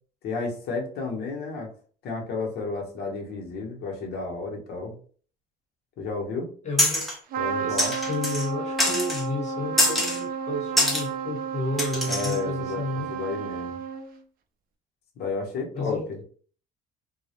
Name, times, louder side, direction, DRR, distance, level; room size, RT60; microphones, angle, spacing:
voice 1, 0.2-1.7 2.0-5.0 6.0-6.5 7.4-7.9 12.1-13.8 15.2-16.0, left 4 dB, 70° left, 1 dB, 0.8 m, -32 dB
voice 2, 6.6-7.1 7.6-13.1 15.7-16.1, left 2 dB, 40° left, 0 dB, 1.0 m, -32 dB
sound 1, 6.8-7.2 7.8-8.5 8.8-9.2 9.8-10.2 10.8-11.1 11.8-12.4, left 1 dB, ahead, 0.7 m, -24 dB
Trumpet, 7.3-14.2, right 6 dB, 60° right, 0.4 m, -32 dB
2.2 x 2.0 x 2.8 m, 0.44 s
cardioid pair, 110°, 17 cm